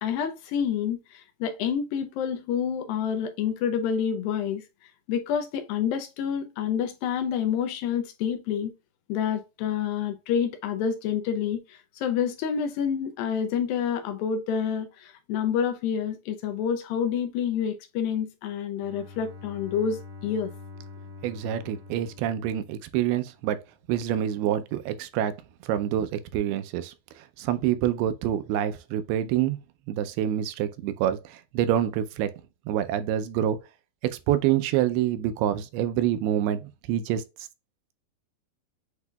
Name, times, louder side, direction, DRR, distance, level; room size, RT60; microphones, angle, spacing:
voice 1, 0.0-4.6 5.1-8.7 9.1-20.5, left 8 dB, 80° left, 2.2 m, -28 dB
Bowed string instrument, 18.8-23.4, left 4 dB, 50° right, 1.3 m, -45 dB
voice 2, 21.2-23.6 23.9-25.3 25.6-29.6 29.9-32.3 32.7-33.6 34.0-37.2, right 11 dB, 85° right, 2.5 m, -27 dB
8.1 x 2.8 x 2.2 m
omnidirectional pair, 4.4 m